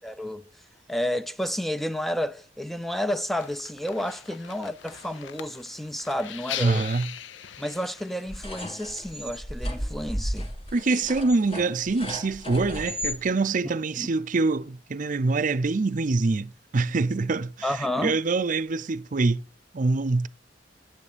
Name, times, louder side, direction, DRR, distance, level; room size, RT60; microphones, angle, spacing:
voice 1, 0.0-0.5 0.9-6.8 7.6-10.5 13.9-14.1 17.6-18.2, equal, ahead, 0.5 m, -31 dB
sound 1, 3.4-8.4, left 10 dB, 80° left, 0.6 m, -40 dB
voice 2, 6.6-7.1 10.7-19.4 19.7-20.3, right 3 dB, 45° right, 0.6 m, -25 dB
sound 2, 8.3-13.2, equal, 30° left, 2.1 m, -34 dB
10.0 x 9.7 x 5.1 m
head